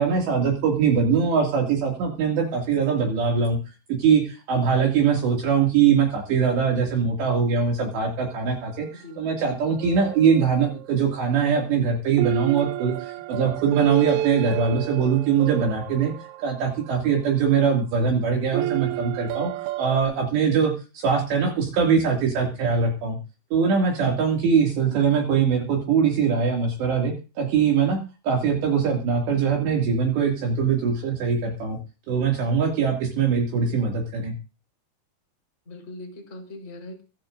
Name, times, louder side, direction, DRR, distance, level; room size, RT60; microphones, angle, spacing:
voice 1, 0.0-3.6 3.9-16.1 16.4-19.5 19.8-23.2 23.5-31.8 32.1-34.3, right 6 dB, 60° right, 0 dB, 4.4 m, -22 dB
voice 2, 9.0-9.3 35.6-37.0, left 1 dB, 15° left, 1 dB, 4.5 m, -40 dB
sound 1, 9.6-11.2 12.2-17.2 18.5-20.0, right 14 dB, 90° right, 3.6 m, -31 dB
26.0 x 13.0 x 2.6 m, 0.32 s
omnidirectional pair, 5.8 m